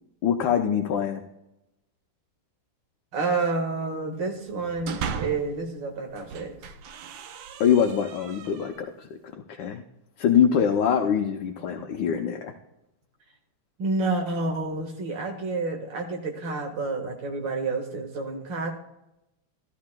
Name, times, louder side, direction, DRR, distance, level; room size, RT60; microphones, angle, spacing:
voice 1, 0.2-1.2 7.6-9.8 10.2-12.5, left 8 dB, 75° left, 3 dB, 1.4 m, -24 dB
voice 2, 3.1-6.6 11.7-11.9 13.8-18.8, right 3 dB, 70° right, 2 dB, 2.3 m, -29 dB
sound 1, 4.5-5.6 6.1-8.9, right 6 dB, 90° right, 1.4 m, -37 dB
15.0 x 12.5 x 2.2 m, 0.88 s
omnidirectional pair, 2.1 m